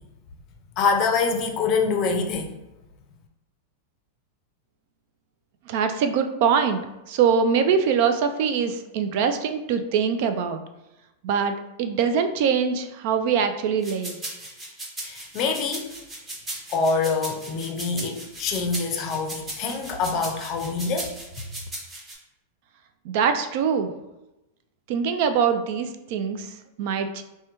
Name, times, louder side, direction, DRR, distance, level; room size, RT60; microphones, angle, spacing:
voice 1, 0.8-2.6 15.0-15.9 16.7-21.1, left 4 dB, 35° left, 3 dB, 0.5 m, -25 dB
voice 2, 5.7-6.8 7.1-10.6 11.2-14.2 23.0-23.9 24.9-27.2, right 6 dB, 55° right, 8 dB, 0.3 m, -23 dB
sound 1, 13.8-22.1, right 1 dB, 15° right, 0.9 m, -37 dB
4.7 x 2.2 x 2.9 m, 0.95 s
supercardioid pair, 145°, 0 cm